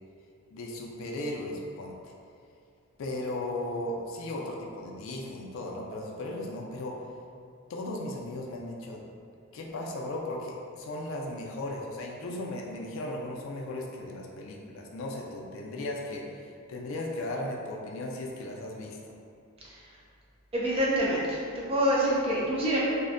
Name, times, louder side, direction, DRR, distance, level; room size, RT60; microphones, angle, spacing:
voice 1, 0.5-2.1 3.0-7.0 7.7-9.0 9.5-19.0, left 1 dB, 60° left, -2 dB, 0.3 m, -36 dB
voice 2, 20.5-22.8, equal, 25° right, -5 dB, 0.3 m, -26 dB
2.5 x 2.1 x 2.5 m, 2.4 s
head